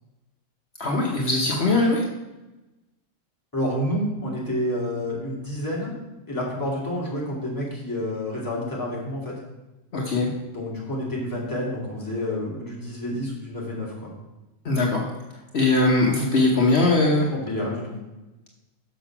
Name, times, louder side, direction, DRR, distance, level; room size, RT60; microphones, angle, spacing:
voice 1, 0.8-2.0 9.9-10.3 14.6-15.0 15.5-17.3, left 2 dB, 55° left, -1 dB, 1.3 m, -20 dB
voice 2, 3.5-5.9 6.3-9.3 10.5-13.9 17.3-17.9, left 1 dB, 15° left, -5 dB, 2.6 m, -29 dB
6.8 x 6.3 x 5.9 m, 1.0 s
omnidirectional pair, 1.4 m